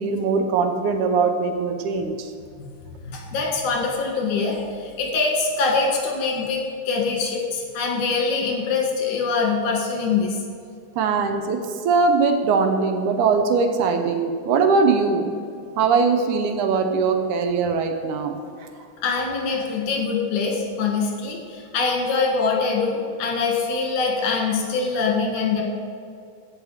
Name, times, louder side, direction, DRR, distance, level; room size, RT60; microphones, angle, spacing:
voice 1, 0.0-2.3 11.0-15.3 15.8-18.9, right 4 dB, 75° right, 5 dB, 2.2 m, -21 dB
voice 2, 3.0-10.4 19.0-25.6, left 4 dB, 70° left, -1 dB, 3.0 m, -24 dB
15.5 x 5.3 x 4.9 m, 2.3 s
omnidirectional pair, 3.6 m